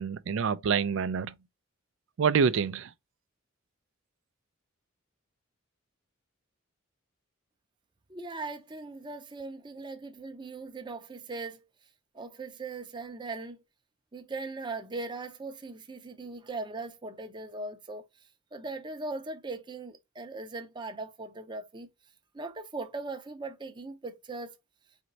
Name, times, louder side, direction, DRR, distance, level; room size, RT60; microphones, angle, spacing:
voice 1, 0.0-1.3 2.2-2.9, right 6 dB, 60° right, 0.4 m, -26 dB
voice 2, 8.1-11.6 12.1-13.6 14.1-18.0 18.5-21.9 22.3-24.6, right 3 dB, 20° right, 0.6 m, -39 dB
4.3 x 3.1 x 3.9 m
head